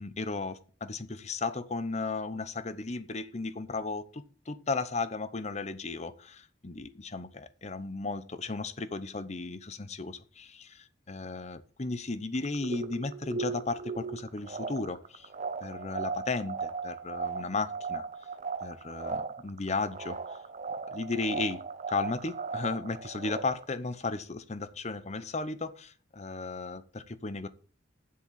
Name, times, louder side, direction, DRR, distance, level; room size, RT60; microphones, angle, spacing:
voice 1, 0.0-10.5 11.1-15.3 15.6-18.0 18.6-20.4 20.9-21.6 21.9-27.5, left 3 dB, 35° left, 0.8 m, -35 dB
sound 1, 12.4-23.6, right 4 dB, 40° right, 0.7 m, -37 dB
7.7 x 7.1 x 7.3 m
head